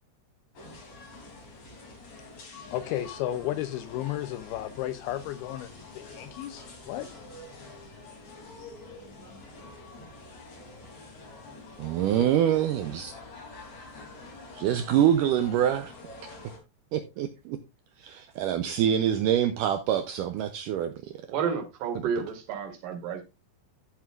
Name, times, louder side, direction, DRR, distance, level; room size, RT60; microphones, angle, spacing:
sound 1, 0.5-16.6, left 3 dB, 45° left, 4.2 m, -46 dB
voice 1, 2.7-5.7 5.9-7.1 12.2-12.3, left 13 dB, 80° left, 2.5 m, -33 dB
voice 2, 11.8-13.1 14.5-15.9 16.9-17.6 18.0-21.2 22.2-22.3, right 10 dB, 85° right, 1.9 m, -25 dB
voice 3, 21.3-23.2, right 6 dB, 60° right, 3.4 m, -31 dB
13.5 x 7.7 x 2.5 m
omnidirectional pair, 4.7 m